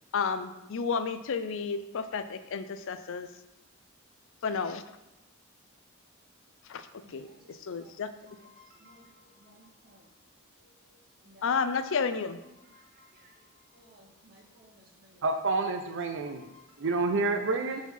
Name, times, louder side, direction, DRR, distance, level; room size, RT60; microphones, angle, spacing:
voice 1, 0.1-3.3 4.4-4.8 6.7-6.9 7.1-8.1 11.4-12.4, left 5 dB, 65° left, 11 dB, 0.5 m, -31 dB
voice 2, 8.6-9.1 9.4-9.6 11.3-11.4 12.8-13.1 13.7-14.7 16.5-16.8, left 1 dB, 45° right, -1 dB, 1.6 m, -58 dB
voice 3, 15.2-16.5 16.8-17.8, right 3 dB, 60° right, 5 dB, 0.6 m, -28 dB
5.7 x 4.9 x 5.4 m, 0.94 s
head